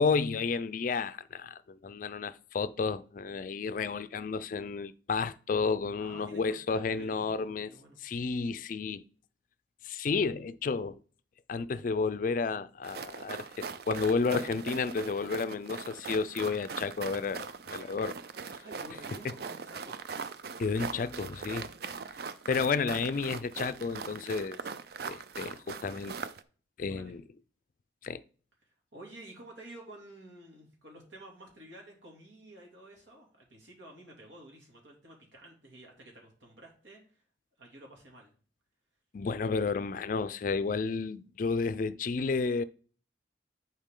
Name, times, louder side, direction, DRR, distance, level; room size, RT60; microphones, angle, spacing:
voice 1, 0.0-7.7 8.0-9.0 9.8-11.0 11.5-18.2 20.6-21.7 22.5-24.6 25.0-26.1 26.8-27.2 28.0-28.2 39.1-42.6, left 4 dB, 45° left, 0.3 m, -31 dB
voice 2, 6.0-8.0 18.6-20.0 21.5-21.8 26.8-27.2 28.6-37.2 37.6-38.3, right 1 dB, 85° right, 2.6 m, -51 dB
sound 1, 12.8-26.4, right 5 dB, 55° right, 0.4 m, -41 dB
10.5 x 4.5 x 3.7 m
head